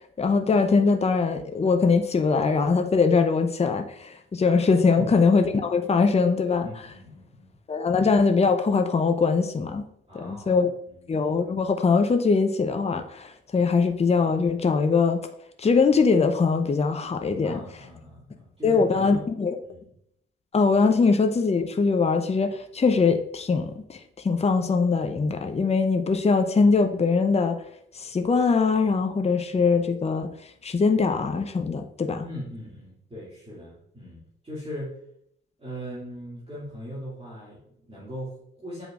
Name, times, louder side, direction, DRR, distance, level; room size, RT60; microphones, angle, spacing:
voice 1, 0.2-6.7 7.7-9.8 10.1-10.7 11.1-15.2 15.6-17.6 18.6-19.6 20.5-24.0 24.2-27.6 27.9-30.3 30.6-32.2, left 4 dB, 20° left, 0.7 m, -22 dB
voice 2, 6.6-7.6 10.1-11.1 17.4-19.2 19.7-19.9 32.2-35.0 35.6-38.8, equal, 20° right, 2.4 m, -40 dB
7.9 x 4.9 x 2.5 m
figure-of-eight pair, 40°, 30 cm